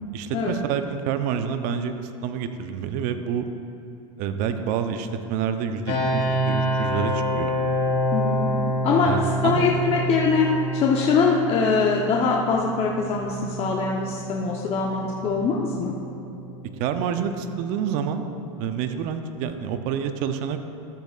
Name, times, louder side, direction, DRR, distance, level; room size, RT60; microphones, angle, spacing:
voice 1, 0.1-1.9 2.2-3.5 4.2-7.6 9.0-9.7 16.8-18.2 18.6-20.6, right 7 dB, 50° right, 8 dB, 0.7 m, -28 dB
sound 1, 5.9-18.7, equal, 55° left, 2.1 m, -28 dB
voice 2, 8.1-8.5 8.8-9.1 9.4-15.9, left 5 dB, 35° left, -2 dB, 0.9 m, -23 dB
13.0 x 8.2 x 2.5 m, 2.7 s
hypercardioid pair, 110°, 17 cm